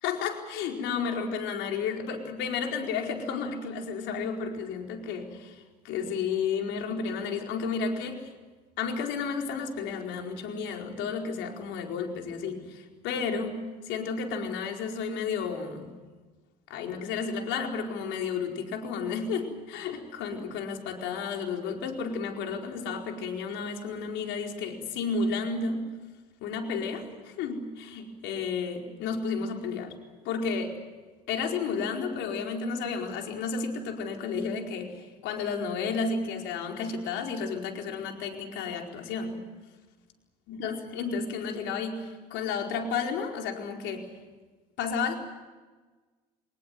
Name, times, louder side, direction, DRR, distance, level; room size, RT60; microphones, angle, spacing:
voice 1, 0.0-8.3 8.8-15.9 16.7-25.8 26.4-29.9 30.2-30.8 31.3-39.4 40.5-44.1 44.8-45.1, left 5 dB, 65° left, 3 dB, 4.6 m, -32 dB
24.0 x 20.0 x 9.4 m, 1.3 s
supercardioid pair, 80°, 20 cm